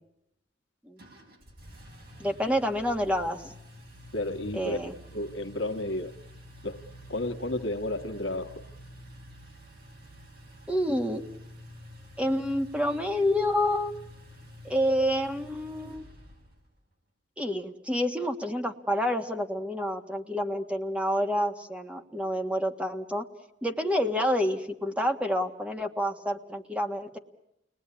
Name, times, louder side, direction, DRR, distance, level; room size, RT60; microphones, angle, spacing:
Engine, 1.0-16.7, equal, 55° right, 5.5 m, -49 dB
voice 1, 2.2-3.5 4.5-4.9 10.7-11.2 12.2-13.9 14.6-16.1 17.4-23.2 23.6-27.2, equal, 5° right, 5 dB, 1.6 m, -28 dB
voice 2, 4.1-4.8 5.1-6.1 6.6-6.8 7.1-8.6, left 1 dB, 70° left, 7 dB, 1.5 m, -32 dB
29.5 x 20.5 x 9.7 m, 0.83 s
head